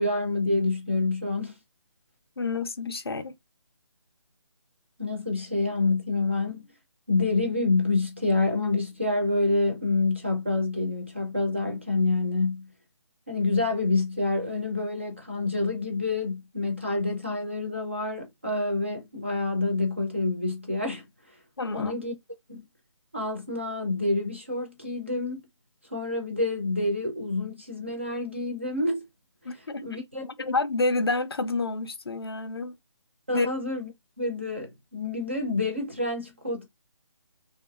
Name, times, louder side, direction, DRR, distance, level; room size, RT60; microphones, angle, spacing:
voice 1, 0.0-1.5 5.0-6.7 7.1-12.7 13.3-21.0 21.7-22.1 22.5-22.6 23.1-25.5 25.9-29.1 29.8-30.2 33.3-33.9 34.2-36.7, left 2 dB, 25° right, 0.4 m, -27 dB
voice 2, 2.4-3.4 21.6-21.9 29.5-30.0 30.4-32.8 33.3-33.5, left 3 dB, 50° left, 0.4 m, -28 dB
2.7 x 2.4 x 2.2 m
hypercardioid pair, 175°, 16 cm